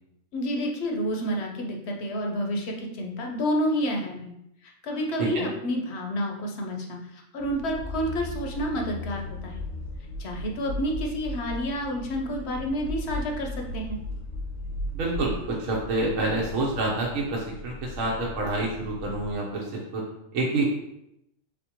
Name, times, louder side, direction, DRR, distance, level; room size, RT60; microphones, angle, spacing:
voice 1, 0.3-4.3 4.8-9.5 10.2-14.0, equal, 60° left, 1 dB, 0.9 m, -29 dB
sound 1, 7.4-19.4, left 1 dB, 85° left, 1.1 m, -37 dB
voice 2, 14.9-20.0 20.3-20.6, right 2 dB, 75° right, -2 dB, 1.1 m, -28 dB
4.2 x 3.6 x 2.9 m, 0.80 s
omnidirectional pair, 1.4 m